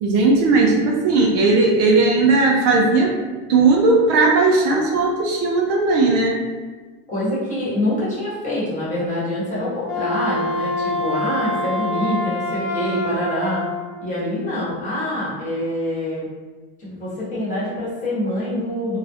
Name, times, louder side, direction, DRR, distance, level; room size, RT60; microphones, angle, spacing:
voice 1, 0.0-3.2 3.5-6.4, right 3 dB, 55° right, -1 dB, 0.4 m, -17 dB
voice 2, 7.1-13.6 14.0-16.3 16.8-19.0, left 1 dB, 25° left, -8 dB, 0.9 m, -25 dB
Wind instrument woodwind instrument, 9.8-13.9, left 1 dB, 55° left, 0.6 m, -25 dB
2.2 x 2.0 x 2.7 m, 1.4 s
cardioid pair, 155°, 30 cm